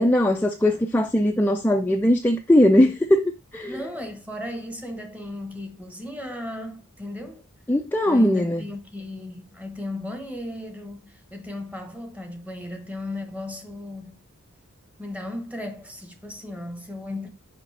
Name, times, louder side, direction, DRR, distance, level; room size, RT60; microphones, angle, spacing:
voice 1, 0.0-3.8 7.7-8.6, left 1 dB, 10° left, 0.4 m, -20 dB
voice 2, 3.7-7.5 8.1-14.2 15.0-17.3, left 1 dB, 5° right, 1.0 m, -36 dB
6.1 x 5.1 x 3.3 m
head